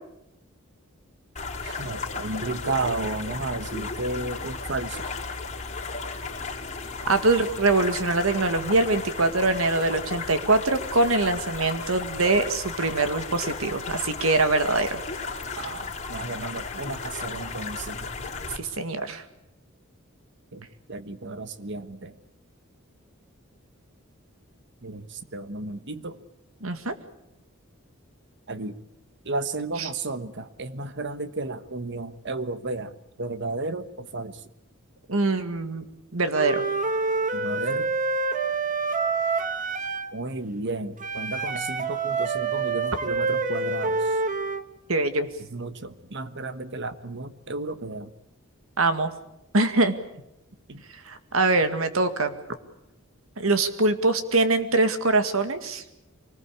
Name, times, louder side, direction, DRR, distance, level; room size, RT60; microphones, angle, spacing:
sound 1, 1.4-18.6, left 4 dB, 35° left, 4.2 m, -35 dB
voice 1, 1.6-5.0 15.6-18.1 20.5-22.1 24.8-26.2 28.5-28.8 29.2-34.4 37.3-37.9 40.1-44.1 45.5-48.1 50.7-50.8, right 2 dB, 60° right, 12 dB, 1.3 m, -33 dB
voice 2, 7.1-15.0 18.5-19.2 26.6-26.9 29.8-29.9 35.1-35.8 36.1-36.7 44.9-45.3 48.8-49.1 49.5-50.0 51.1-52.3 53.4-55.8, right 2 dB, 80° right, 9 dB, 2.1 m, -23 dB
Wind instrument woodwind instrument, 36.3-40.1 41.0-44.6, right 4 dB, 40° right, 1.5 m, -27 dB
24.5 x 20.0 x 8.6 m, 0.85 s
head